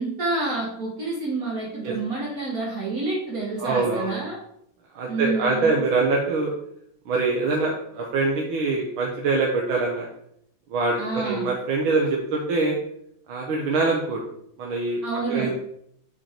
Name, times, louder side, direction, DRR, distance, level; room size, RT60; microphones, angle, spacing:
voice 1, 0.0-4.4 5.1-5.7 11.0-11.5 15.0-15.5, right 3 dB, 50° right, -3 dB, 1.4 m, -28 dB
voice 2, 3.6-4.2 4.9-6.5 7.1-10.1 10.7-12.8 13.3-14.2 14.6-15.0 15.3-15.5, right 3 dB, 85° right, -1 dB, 1.6 m, -24 dB
5.3 x 4.5 x 4.3 m, 0.74 s
omnidirectional pair, 2.2 m